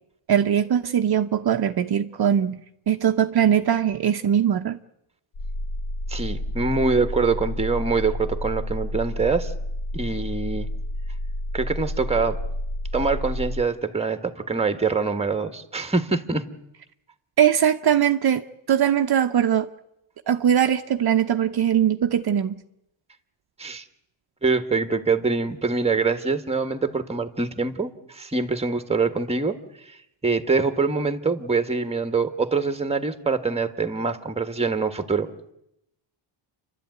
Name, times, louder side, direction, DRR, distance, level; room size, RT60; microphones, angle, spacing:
voice 1, 0.3-2.6 2.9-4.8 17.4-19.7 20.3-22.5, right 9 dB, 50° right, 6 dB, 0.9 m, -21 dB
sound 1, 5.3-13.6, left 1 dB, 80° left, 3.4 m, -30 dB
voice 2, 6.1-9.5 9.9-10.7 11.5-12.4 12.9-16.5 23.6-23.8 24.4-29.6 30.2-35.3, right 4 dB, 10° right, 9 dB, 1.5 m, -24 dB
30.0 x 12.5 x 9.4 m, 0.84 s
wide cardioid pair, 140°, 48 cm